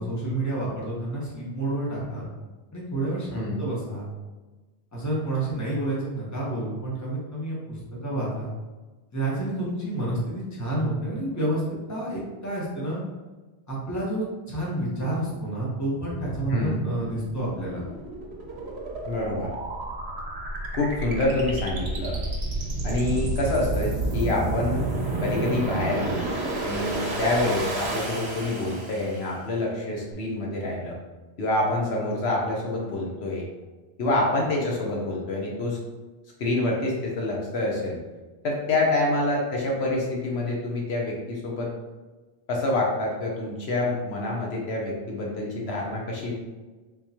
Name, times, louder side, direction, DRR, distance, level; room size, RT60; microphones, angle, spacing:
voice 1, 0.0-2.3 2.7-4.1 4.9-8.5 9.1-11.6 11.9-13.0 13.7-17.8, right 1 dB, 15° left, -6 dB, 1.0 m, -29 dB
voice 2, 3.3-3.6 16.5-16.8 19.1-19.5 20.7-22.2 22.8-24.9 25.2-26.3 26.6-31.0 31.4-33.5 34.0-35.8 36.4-38.0 38.4-41.7 42.5-46.3, left 2 dB, 75° left, -2 dB, 1.0 m, -27 dB
sound 1, 16.0-29.4, right 2 dB, 80° right, 1.0 m, -31 dB
3.7 x 3.0 x 2.8 m, 1.2 s
omnidirectional pair, 1.1 m